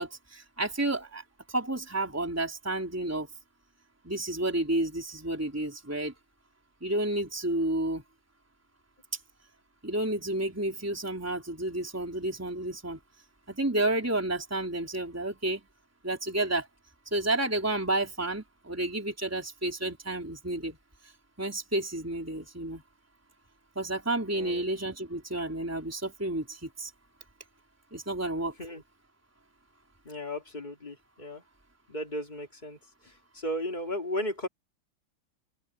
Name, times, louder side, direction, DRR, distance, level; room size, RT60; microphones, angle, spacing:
voice 1, 0.0-3.3 4.0-6.1 6.8-8.0 9.8-13.0 13.5-15.6 16.0-16.7 17.1-20.8 21.4-22.8 23.8-26.9 27.9-28.6, right 1 dB, 5° right, 3.9 m, -31 dB
voice 2, 24.3-24.7 28.6-28.8 30.0-31.4 31.9-32.8 33.0-34.5, equal, 20° left, 2.7 m, -35 dB
open air
omnidirectional pair, 2.2 m